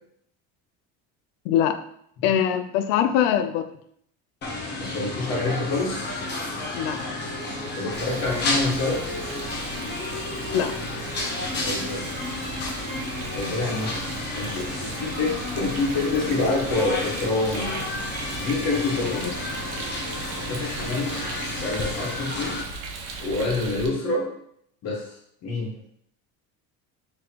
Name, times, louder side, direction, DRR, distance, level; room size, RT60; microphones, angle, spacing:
voice 1, 1.4-1.8 2.2-3.7 6.7-7.0 10.5-10.8, left 9 dB, 85° left, 9 dB, 0.5 m, -22 dB
sound 1, 4.4-22.6, left 2 dB, 30° left, 0.9 m, -31 dB
voice 2, 4.8-6.3 7.7-9.0 11.6-12.1 13.3-17.7 18.4-19.2 20.5-21.2 21.6-22.6 23.2-24.3 24.8-25.1 25.4-25.7, left 3 dB, 45° left, -3 dB, 1.5 m, -27 dB
Rain, 7.9-23.9, right 3 dB, 85° right, 0.9 m, -38 dB
3.9 x 3.3 x 2.9 m, 0.68 s
cardioid pair, 155°, 35 cm